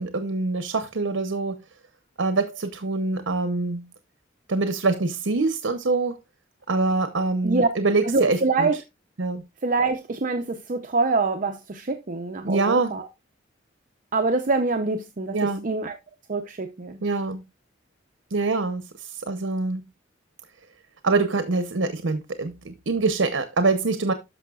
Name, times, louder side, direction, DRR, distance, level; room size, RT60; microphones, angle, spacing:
voice 1, 0.0-1.6 2.2-3.9 4.5-6.1 6.7-8.7 9.2-9.4 12.4-12.9 15.3-15.7 17.0-17.4 18.3-19.8 21.0-24.1, right 3 dB, 75° right, 0.8 m, -24 dB
voice 2, 8.1-8.7 9.6-13.1 14.1-16.0 16.3-17.0, right 3 dB, 45° right, 0.7 m, -25 dB
13.0 x 5.5 x 2.4 m
head